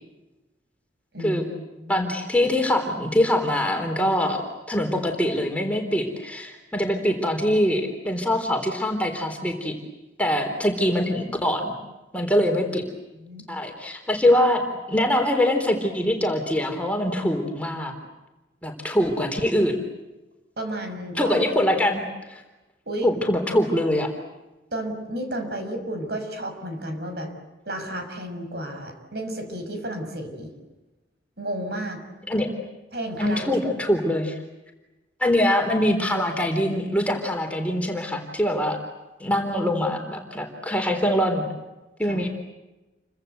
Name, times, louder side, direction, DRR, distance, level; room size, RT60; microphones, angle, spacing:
voice 1, 1.1-1.4 1.8-2.1 13.1-13.5 20.6-21.4 22.9-23.1 24.7-27.3 27.6-30.5 31.4-32.0 32.9-33.6 42.0-42.2, right 1 dB, 60° right, 6 dB, 6.2 m, -32 dB
voice 2, 1.9-9.7 10.2-11.8 12.1-12.8 13.5-14.6 14.9-17.9 18.6-19.8 21.2-22.0 22.3-22.4 23.0-24.1 32.3-32.5 33.2-34.4 35.2-38.8 39.2-41.5 42.0-42.3, left 1 dB, 10° left, 3 dB, 3.8 m, -23 dB
29.5 x 24.5 x 8.0 m, 1.1 s
head